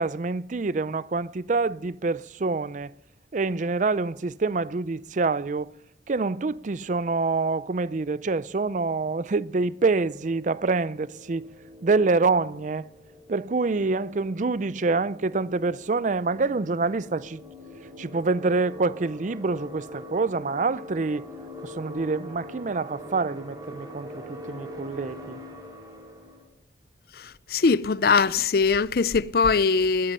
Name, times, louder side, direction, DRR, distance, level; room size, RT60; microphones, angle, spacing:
voice 1, 0.0-2.9 3.3-5.7 6.1-11.5 11.8-12.9 13.3-17.4 18.0-21.3 21.6-25.4, right 3 dB, 45° right, 0.5 m, -26 dB
sound 1, 9.9-26.4, left 1 dB, 20° right, 3.5 m, -43 dB
voice 2, 27.5-30.1, left 4 dB, 55° left, 0.5 m, -21 dB
18.5 x 13.5 x 5.4 m
head